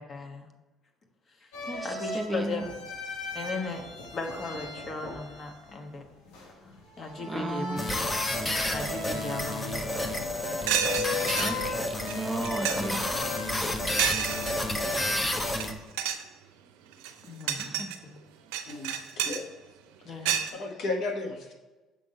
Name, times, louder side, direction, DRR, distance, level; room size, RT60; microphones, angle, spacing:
voice 1, 0.1-0.5 1.4-1.5 1.8-2.7 3.3-3.8 4.1-6.0 7.0-7.9 8.7-10.2 17.2-18.2 20.0-20.4, left 3 dB, 45° left, 4 dB, 1.2 m, -37 dB
sound 1, 1.5-15.4, left 2 dB, 85° left, 1.3 m, -38 dB
voice 2, 1.7-2.6 7.3-8.0 11.4-13.1 17.6-17.9, right 2 dB, 20° right, 6 dB, 0.6 m, -35 dB
sound 2, 7.8-15.7, left 1 dB, 20° left, 0.9 m, -30 dB
sound 3, 10.2-10.3 10.7-11.5 12.1-12.2 12.4-13.0 14.0-14.5 15.5-15.7 15.9-16.3 16.9-18.0 18.5-19.4 20.2-20.5, right 9 dB, 85° right, 0.5 m, -29 dB
voice 3, 20.1-21.5, left 3 dB, 65° left, 1 dB, 1.4 m, -34 dB
6.8 x 3.8 x 4.4 m, 1.1 s
supercardioid pair, 70°, 0 cm